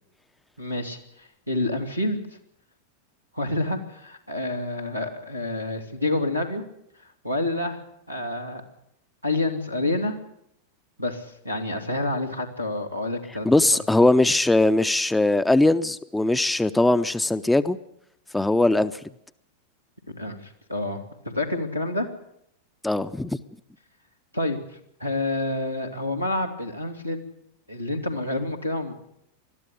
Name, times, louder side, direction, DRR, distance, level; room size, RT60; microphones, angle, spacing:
voice 1, 0.6-2.2 3.3-6.6 7.2-7.8 8.1-8.6 9.2-10.2 11.0-13.6 20.2-22.1 24.3-24.6 25.0-27.2 27.7-28.9, left 2 dB, 90° left, 1 dB, 2.7 m, -28 dB
voice 2, 13.4-17.8 18.3-18.9 22.8-23.4, left 2 dB, 5° left, 13 dB, 0.7 m, -20 dB
21.0 x 13.0 x 9.9 m, 0.75 s
figure-of-eight pair, 90°, 0 cm